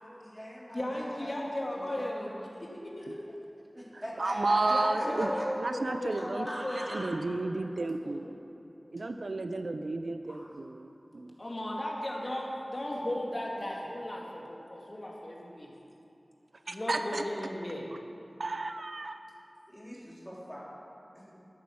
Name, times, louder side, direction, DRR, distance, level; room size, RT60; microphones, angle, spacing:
voice 1, 0.0-1.3 1.7-2.4 3.7-5.5 6.1-7.1 19.7-20.7 21.2-21.3, equal, ahead, -6 dB, 3.7 m, -42 dB
voice 2, 0.7-3.4 4.7-7.1 8.0-8.2 10.3-10.5 11.4-15.7 16.7-17.8, left 1 dB, 45° left, -2 dB, 2.1 m, -36 dB
voice 3, 3.9-5.3 5.6-6.6 6.9-8.2 8.9-11.3 16.7-17.2 18.4-19.2, right 2 dB, 80° right, 7 dB, 0.5 m, -32 dB
13.0 x 9.4 x 6.3 m, 2.8 s
wide cardioid pair, 50°, 0 cm